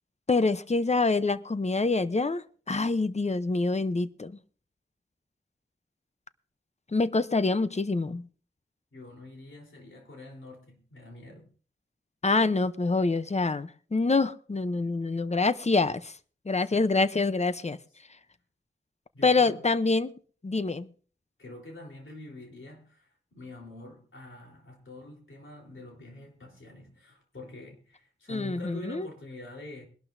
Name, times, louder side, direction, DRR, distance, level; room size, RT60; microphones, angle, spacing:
voice 1, 0.3-4.4 6.9-8.2 12.2-16.1 16.5-17.8 19.2-20.1 20.4-20.9 28.3-29.1, left 3 dB, 35° left, 14 dB, 0.7 m, -26 dB
voice 2, 8.9-11.5 16.7-16.9 19.1-19.6 21.4-29.9, left 1 dB, 80° left, 0 dB, 3.8 m, -46 dB
22.0 x 12.0 x 2.7 m, 0.42 s
wide cardioid pair, 75°, 20 cm